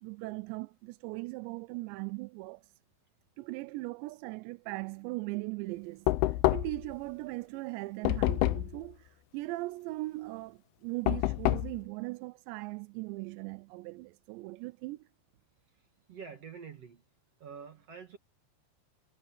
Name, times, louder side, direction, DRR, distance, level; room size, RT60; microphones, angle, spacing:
voice 1, 0.0-2.7 3.4-15.1, right 22 dB, 85° right, 2.8 m, -39 dB
Knock, 6.1-6.9 8.1-8.8 11.1-11.8, left 17 dB, 80° left, 2.3 m, -27 dB
voice 2, 15.7-17.0 17.4-18.2, right 6 dB, 45° right, 2.3 m, -47 dB
omnidirectional pair, 5.0 m